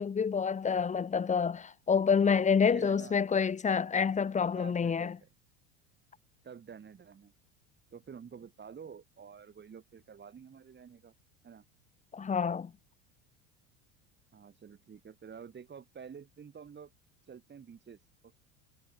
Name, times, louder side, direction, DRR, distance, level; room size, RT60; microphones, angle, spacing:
voice 1, 0.0-5.2 12.1-12.7, left 6 dB, 20° left, 1.0 m, -28 dB
voice 2, 2.7-3.2 4.5-5.3 6.4-7.3 7.9-11.1 11.4-11.6 14.3-16.9 17.3-18.3, right 7 dB, 30° right, 6.8 m, -49 dB
supercardioid pair, 100°, 37 cm